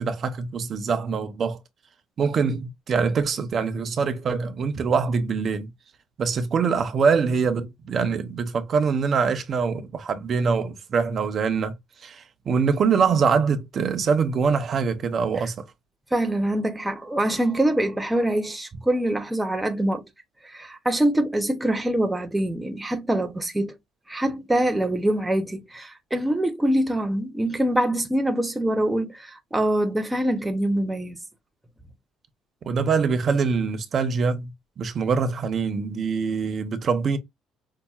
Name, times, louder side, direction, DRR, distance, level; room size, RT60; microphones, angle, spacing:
voice 1, 0.0-1.6 2.2-5.7 6.2-15.6 32.6-37.2, right 5 dB, 45° right, 0.7 m, -24 dB
voice 2, 16.1-20.1 20.4-23.8 24.1-31.2, right 1 dB, 10° right, 0.7 m, -24 dB
5.5 x 2.2 x 2.3 m
cardioid pair, 115°, 0 cm